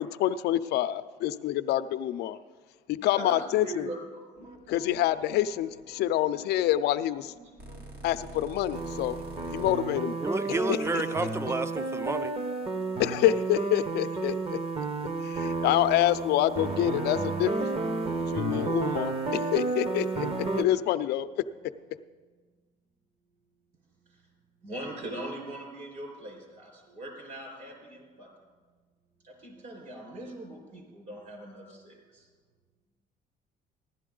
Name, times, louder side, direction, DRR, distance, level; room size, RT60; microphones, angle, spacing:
voice 1, 0.2-2.4 2.9-3.9 4.7-7.3 8.0-9.2 9.5-10.1 10.5-11.0 13.0-14.6 15.2-17.7 18.3-20.3 20.6-21.3, left 12 dB, 80° left, 12 dB, 0.5 m, -27 dB
voice 2, 3.0-4.0 4.4-4.5 24.6-28.3 29.2-32.3, right 1 dB, 55° right, 1 dB, 4.8 m, -41 dB
sound 1, 4.3-9.8, right 2 dB, 70° right, 2.1 m, -47 dB
sound 2, 8.7-20.6, right 3 dB, 35° right, 1.0 m, -31 dB
voice 3, 10.2-12.3, right 3 dB, 15° right, 12 dB, 0.5 m, -30 dB
15.5 x 11.5 x 3.8 m, 1.4 s
cardioid pair, 110°, 17 cm